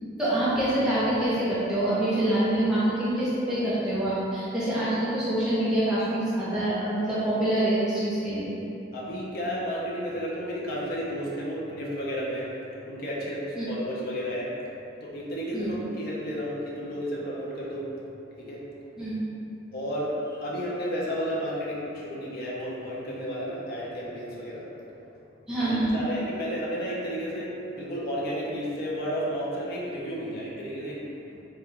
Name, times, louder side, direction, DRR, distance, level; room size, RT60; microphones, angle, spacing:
voice 1, 0.2-8.5 13.6-13.7 15.5-15.8 19.0-19.2 25.5-25.9, right 1 dB, 5° right, -12 dB, 0.8 m, -26 dB
voice 2, 8.9-12.5 12.8-14.5 15.0-17.9 18.4-18.6 18.9-19.1 19.7-25.1 25.6-31.4, equal, 50° left, -5 dB, 0.7 m, -32 dB
4.3 x 2.4 x 3.6 m, 2.8 s
head